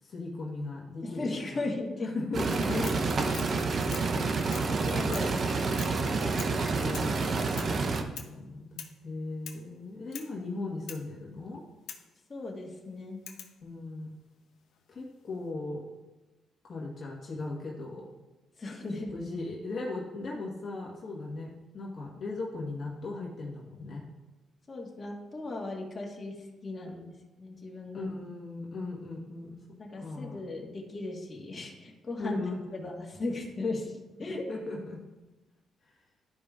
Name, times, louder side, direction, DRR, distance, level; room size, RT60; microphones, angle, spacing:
voice 1, 0.0-1.6 2.0-2.8 4.0-4.3 6.8-11.6 13.6-14.1 14.9-15.8 16.6-18.1 19.1-24.0 27.9-29.5 30.0-30.5 32.2-32.9 34.5-35.0, left 3 dB, 50° left, -3 dB, 1.4 m, -38 dB
voice 2, 1.0-2.1 2.7-3.1 4.8-6.5 12.3-13.2 18.6-19.3 24.7-27.1 27.4-28.0 29.8-32.4 32.7-34.4, left 2 dB, 30° left, -2 dB, 1.5 m, -37 dB
sound 1, 2.3-8.0, right 4 dB, 45° right, 0.7 m, -28 dB
sound 2, 2.8-3.1 3.3-3.6 3.9-4.1 4.5-4.7 5.1-5.4 5.8-6.0 6.4-6.6 6.9-7.2 7.6-7.8 8.2-8.4 8.8-9.0 9.4-9.7 10.1-10.3 10.9-11.1 11.9-12.1 13.3-13.6 14.7-15.2, left 8 dB, 80° left, 0.7 m, -44 dB
12.0 x 5.1 x 2.4 m, 1.1 s
cardioid pair, 100°, 0 cm